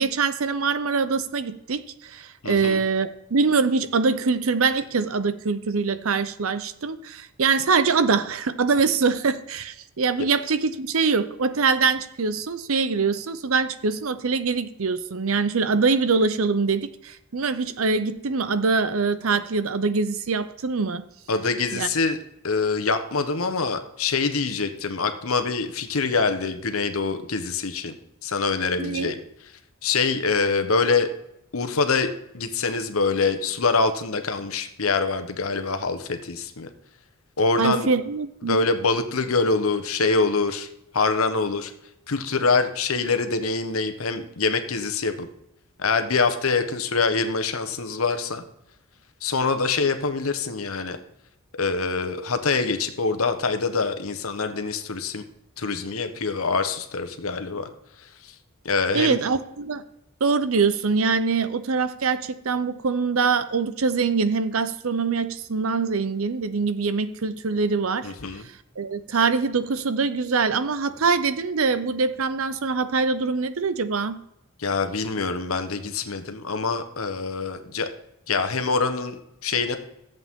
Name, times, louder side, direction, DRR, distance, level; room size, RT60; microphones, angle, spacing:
voice 1, 0.0-21.0 21.7-21.9 28.8-29.1 37.6-38.6 58.9-59.8 60.2-68.1 68.8-74.2, right 4 dB, 70° right, 13 dB, 0.7 m, -24 dB
voice 2, 2.4-2.8 21.3-22.2 22.4-28.0 28.2-29.2 29.8-31.1 31.5-36.7 37.4-37.9 38.4-40.7 40.9-41.7 42.1-45.3 45.8-48.4 49.2-51.0 51.6-55.2 55.6-57.7 58.0-58.3 58.6-59.2 68.0-68.5 74.6-77.9 78.3-79.2 79.4-79.8, left 4 dB, 75° left, 8 dB, 1.1 m, -25 dB
14.0 x 7.8 x 3.7 m, 0.83 s
head